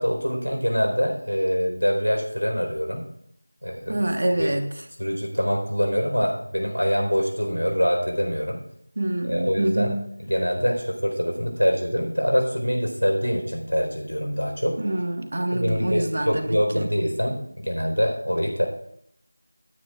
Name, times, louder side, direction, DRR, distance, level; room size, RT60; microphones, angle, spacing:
voice 1, 0.0-3.1 3.6-4.0 4.4-4.5 5.0-8.6 9.3-9.9 10.3-14.8 15.5-18.7, equal, 85° left, 0 dB, 4.2 m, -24 dB
voice 2, 3.9-4.7 9.0-10.1 14.8-16.9, right 1 dB, 40° right, 6 dB, 1.3 m, -26 dB
18.0 x 9.5 x 2.5 m, 0.72 s
figure-of-eight pair, 170°, 0 cm